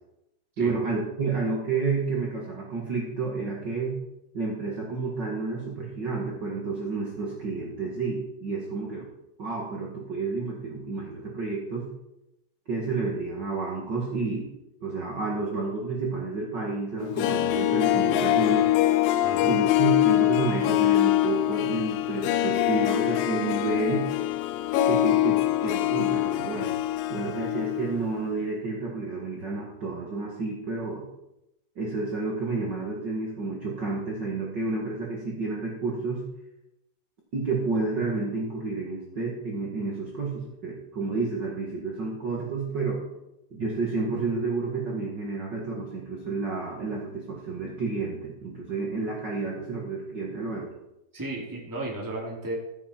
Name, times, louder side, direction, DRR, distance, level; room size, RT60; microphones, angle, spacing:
voice 1, 0.6-3.9 4.3-9.0 9.4-11.8 12.7-14.5 14.8-18.7 19.4-24.1 24.9-26.7 27.1-31.0 31.7-36.2 37.3-43.0 43.5-50.7, right 3 dB, 45° right, -2 dB, 1.5 m, -30 dB
Harp, 17.0-28.0 28.3-28.4, left 14 dB, 85° left, 2.0 m, -24 dB
voice 2, 19.2-19.5 51.1-52.5, right 2 dB, 5° right, -2 dB, 1.8 m, -34 dB
15.0 x 8.7 x 4.5 m, 0.90 s
omnidirectional pair, 4.8 m